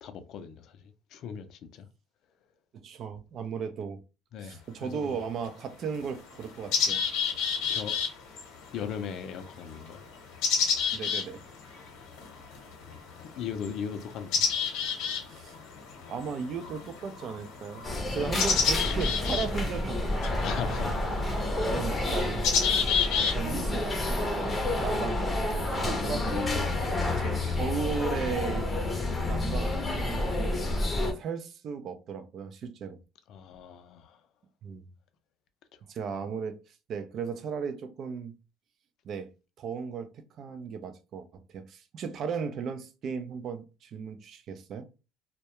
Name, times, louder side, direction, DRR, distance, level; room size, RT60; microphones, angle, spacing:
voice 1, 0.0-1.9 4.3-5.1 7.7-8.0 8.7-10.0 13.3-14.5 20.4-21.3 23.8-23.9 24.5-24.7 25.6-27.1 33.3-34.2, left 7 dB, 60° left, 0.4 m, -39 dB
voice 2, 2.7-4.0 4.4-7.0 10.9-11.4 15.3-15.5 16.1-17.8 18.1-20.4 21.7-22.4 23.2-26.9 27.2-28.7 29.2-30.7 31.0-33.0 34.6-34.9 35.9-36.6 36.9-38.4 39.0-44.9, right 6 dB, 50° right, 0.4 m, -36 dB
sound 1, 4.5-4.6 5.4-5.5 5.9-23.6, left 6 dB, 85° left, 0.8 m, -31 dB
sound 2, 17.8-31.1, left 2 dB, 15° left, 0.6 m, -29 dB
2.2 x 2.1 x 2.8 m
cardioid pair, 130°, 0 cm